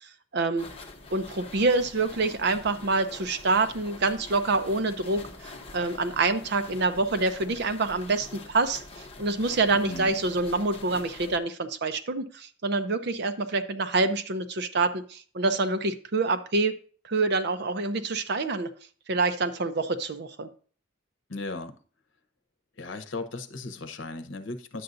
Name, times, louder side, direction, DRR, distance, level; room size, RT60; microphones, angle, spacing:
voice 1, 0.3-0.7 1.1-8.8 9.2-16.8 17.0-18.7 19.1-20.5, right 3 dB, 60° right, 9 dB, 0.7 m, -26 dB
sound 1, 0.6-11.4, left 3 dB, 30° left, 1.1 m, -45 dB
voice 2, 9.8-10.1 21.3-21.7 22.8-24.8, left 2 dB, 75° left, 8 dB, 0.9 m, -36 dB
10.0 x 7.8 x 2.6 m, 0.42 s
head